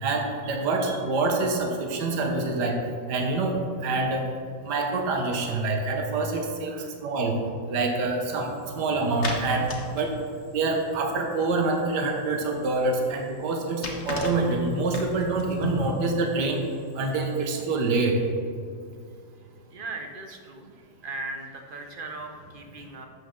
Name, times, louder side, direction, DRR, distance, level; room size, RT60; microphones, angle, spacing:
voice 1, 0.0-2.8 3.1-4.3 4.6-7.4 7.7-9.7 9.9-10.2 10.5-16.6 17.0-18.2, right 3 dB, 70° right, 2 dB, 1.7 m, -26 dB
sound 1, 8.3-17.9, left 2 dB, 45° left, 1.4 m, -38 dB
voice 2, 19.7-23.1, right 2 dB, 40° right, 3 dB, 0.8 m, -38 dB
12.0 x 7.7 x 3.7 m, 2.2 s
omnidirectional pair, 1.9 m